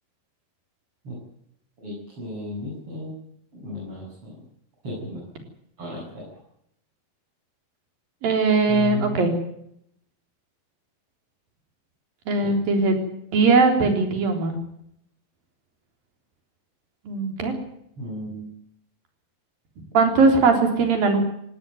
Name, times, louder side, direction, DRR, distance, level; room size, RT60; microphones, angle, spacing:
voice 1, 1.8-3.2 3.5-4.4 4.8-5.2 5.8-6.3 8.7-9.2 12.4-12.5 18.0-18.5, equal, 35° right, -5 dB, 9.0 m, -34 dB
voice 2, 8.2-9.3 12.3-14.6 17.1-17.6 19.9-21.2, right 3 dB, 70° right, 5 dB, 5.5 m, -20 dB
18.5 x 17.5 x 9.5 m, 0.73 s
omnidirectional pair, 4.2 m